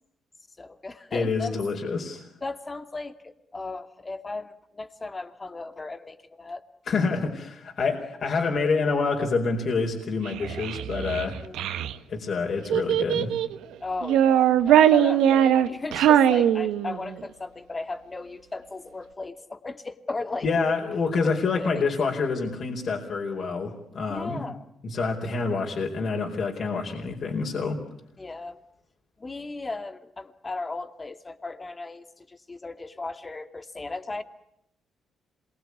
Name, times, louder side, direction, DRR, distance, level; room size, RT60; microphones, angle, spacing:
voice 1, 0.6-1.6 2.4-6.6 8.3-8.4 11.4-11.6 13.8-20.5 21.2-21.9 24.1-24.6 28.2-28.6 29.2-34.2, left 3 dB, 25° left, 9 dB, 2.4 m, -36 dB
voice 2, 1.1-2.3 6.9-11.4 12.1-13.3 20.4-24.4 24.8-27.8, left 4 dB, 50° left, 1 dB, 4.5 m, -27 dB
Child speech kid speaking, 10.3-11.9 12.7-13.6 14.0-17.1, right 10 dB, 85° right, 1.5 m, -21 dB
27.0 x 22.5 x 9.7 m, 0.77 s
cardioid pair, 90°, 0 cm